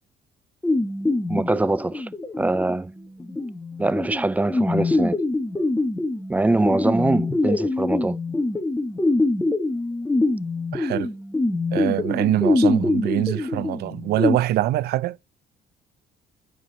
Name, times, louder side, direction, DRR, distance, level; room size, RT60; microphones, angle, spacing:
sound 1, 0.6-14.4, left 2 dB, 10° left, 1.8 m, -24 dB
voice 1, 1.3-2.1 2.4-2.9 3.8-5.2 6.3-8.2, right 2 dB, 10° right, 0.4 m, -23 dB
voice 2, 10.7-11.1 11.7-15.2, right 14 dB, 70° right, 0.5 m, -24 dB
9.2 x 5.0 x 4.3 m
cardioid pair, 110°, 17 cm